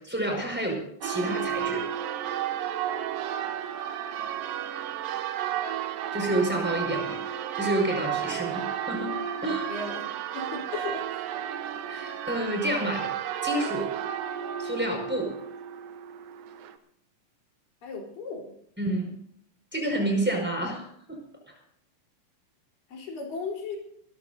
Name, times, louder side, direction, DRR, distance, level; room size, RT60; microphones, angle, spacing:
voice 1, 0.0-1.9 6.1-7.2 7.5-9.7 11.8-13.1 13.4-13.9 14.6-15.4 18.8-19.1 19.7-21.2 21.5-21.6, right 1 dB, 5° right, 1 dB, 5.1 m, -29 dB
Church bell, 1.0-16.8, right 9 dB, 80° right, 2.7 m, -32 dB
voice 2, 9.7-10.0 10.3-11.1 17.8-18.5 22.9-23.8, left 4 dB, 70° left, -1 dB, 5.6 m, -35 dB
29.0 x 14.0 x 2.7 m, 0.69 s
omnidirectional pair, 4.1 m